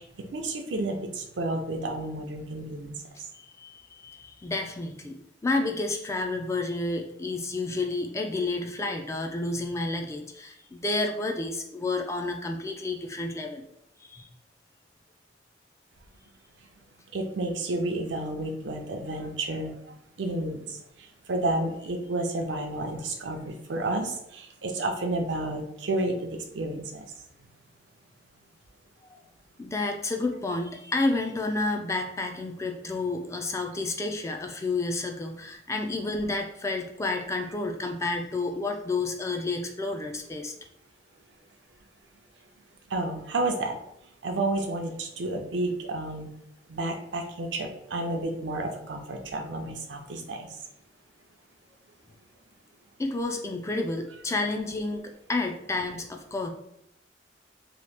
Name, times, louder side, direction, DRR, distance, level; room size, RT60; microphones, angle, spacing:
voice 1, 0.0-3.0 17.1-27.1 42.9-43.8 44.2-46.3 46.7-50.6, right 2 dB, 80° right, 3 dB, 0.5 m, -31 dB
voice 2, 3.3-13.6 14.0-14.3 29.0-29.1 29.6-40.5 53.0-55.0 55.3-56.5, left 2 dB, 15° left, 3 dB, 0.3 m, -30 dB
2.9 x 2.3 x 3.3 m, 0.76 s
head